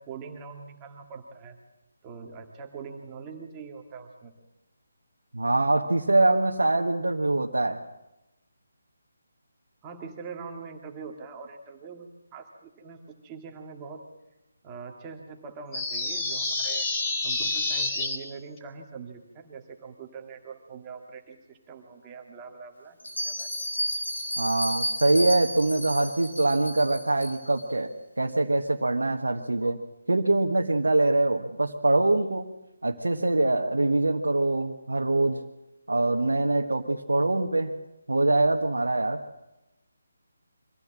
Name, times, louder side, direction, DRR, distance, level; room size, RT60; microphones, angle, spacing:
voice 1, 0.0-1.6 2.0-4.3 9.8-14.0 14.6-16.9 17.2-23.0 23.2-23.5 24.0-24.1, right 5 dB, 20° right, 1 dB, 2.3 m, -43 dB
voice 2, 5.3-7.8 24.4-27.9 28.2-29.8 30.1-32.5 32.8-35.4 35.9-37.7 38.1-39.2, right 2 dB, 70° right, 0 dB, 1.5 m, -24 dB
sound 1, 15.7-18.2, left 3 dB, 20° left, 3.4 m, -28 dB
Bell, 23.0-27.6, equal, 85° left, 5.3 m, -32 dB
24.5 x 15.5 x 7.5 m, 0.95 s
figure-of-eight pair, 150°, 0 cm